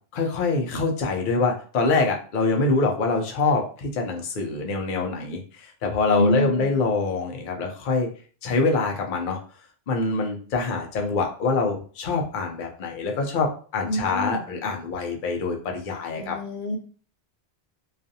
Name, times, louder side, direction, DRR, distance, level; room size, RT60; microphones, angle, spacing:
voice 1, 0.1-8.1 8.4-9.4 9.9-16.4, left 3 dB, 60° left, 1 dB, 0.7 m, -25 dB
voice 2, 6.1-6.8 13.9-14.4 16.2-16.8, left 1 dB, 90° left, 3 dB, 0.9 m, -26 dB
2.4 x 2.4 x 2.6 m, 0.41 s
omnidirectional pair, 1.0 m